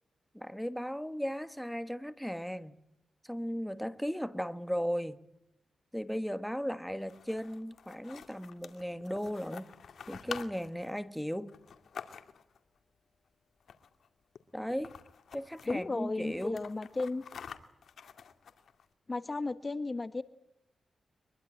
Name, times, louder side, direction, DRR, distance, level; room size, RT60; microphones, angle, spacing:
voice 1, 0.3-2.7 3.2-5.2 5.9-9.7 10.1-11.5 14.5-14.9 15.3-16.6, equal, ahead, 1.4 m, -36 dB
sound 1, 6.9-12.6 13.6-14.1 14.3-14.4 14.7-15.8 16.2-18.8, left 7 dB, 75° left, 2.2 m, -48 dB
voice 2, 15.7-17.2 19.1-20.2, left 3 dB, 30° left, 1.1 m, -34 dB
24.0 x 22.5 x 8.7 m
cardioid pair, 95°, 0 cm